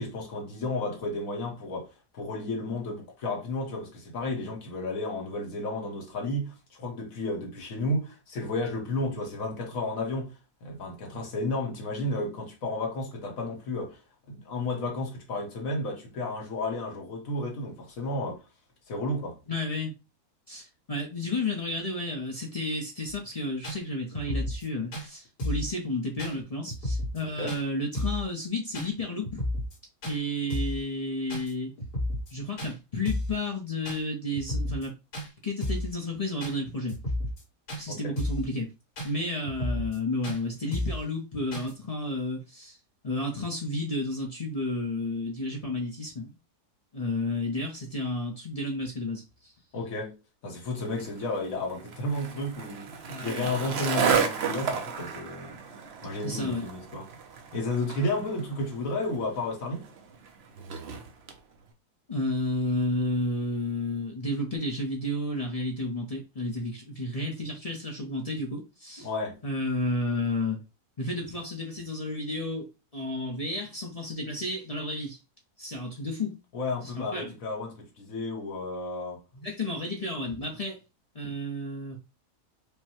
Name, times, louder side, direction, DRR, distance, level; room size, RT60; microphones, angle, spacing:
voice 1, 0.0-10.3 10.6-14.0 14.3-18.4 18.9-19.4 27.2-27.6 37.9-38.1 49.7-50.2 50.4-55.6 56.0-57.0 57.5-59.9 69.0-69.4 76.5-79.2, left 2 dB, 60° left, 1.4 m, -32 dB
voice 2, 19.5-19.9 20.5-29.4 30.0-31.7 32.3-34.9 35.4-37.0 37.8-38.7 39.0-42.8 43.0-46.3 46.9-49.2 53.1-53.5 56.2-56.7 62.1-69.1 69.4-70.6 71.0-72.7 72.9-75.2 75.6-76.4 76.9-77.3 79.3-80.8 81.1-82.0, left 1 dB, 40° left, 0.5 m, -32 dB
sound 1, 23.1-23.2 23.6-23.8 24.1-24.7 24.9-25.1 25.4-25.7 26.2-26.3 26.7-27.2 27.5-27.6 27.9-28.3 28.7-28.9 29.2-29.8 30.0-30.2 30.5-30.8 31.3-31.5 31.8-32.3 32.6-32.7 33.1-33.4 33.9-34.0 34.3-34.9 35.1-35.3 35.6-35.9 36.4-36.6 36.9-37.4 37.7-37.8 38.2-38.5 39.0-39.1 39.4-40.0 40.2-40.4 40.7-41.0 41.5-41.7, left 1 dB, 75° left, 2.3 m, -32 dB
Skateboard, 50.8-61.4, right 6 dB, 60° right, 0.7 m, -33 dB
5.2 x 2.2 x 2.9 m
omnidirectional pair, 1.7 m